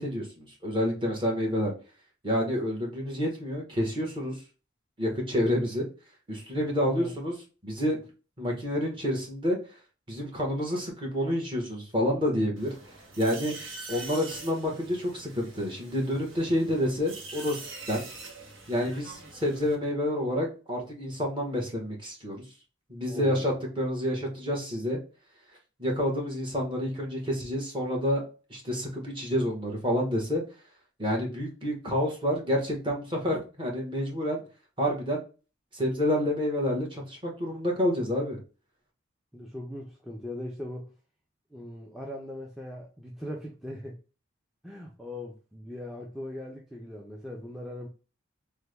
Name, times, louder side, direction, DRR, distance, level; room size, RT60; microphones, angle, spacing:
voice 1, 0.0-1.7 2.2-4.4 5.0-5.8 6.3-7.3 7.6-8.0 8.4-9.6 10.1-12.7 13.2-13.5 13.9-17.6 17.9-18.0 18.7-22.4 22.9-25.0 25.8-28.2 28.5-30.4 31.0-34.4 34.8-35.2 35.7-38.4, equal, 25° right, 1.1 m, -28 dB
voice 2, 6.8-7.1 12.3-12.4 23.1-23.5 39.3-40.9 41.5-44.0 44.6-47.9, left 1 dB, ahead, 0.4 m, -39 dB
sound 1, 12.6-19.8, right 3 dB, 80° right, 0.9 m, -44 dB
3.4 x 2.2 x 3.2 m
head